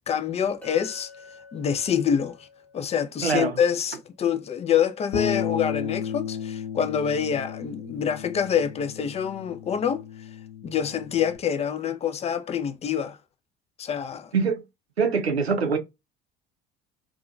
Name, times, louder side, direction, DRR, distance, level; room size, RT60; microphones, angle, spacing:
voice 1, 0.1-1.1 1.5-2.4 2.7-10.0 10.6-13.2 13.8-14.3, left 8 dB, 20° left, 0.4 m, -26 dB
Chink clink, 0.6-4.9, left 3 dB, 5° left, 0.8 m, -51 dB
voice 2, 3.2-3.6 14.3-14.6 15.0-15.8, right 5 dB, 90° right, 0.5 m, -23 dB
Bass guitar, 5.1-11.4, left 9 dB, 50° left, 0.7 m, -33 dB
2.7 x 2.3 x 2.4 m
figure-of-eight pair, 60°, 31 cm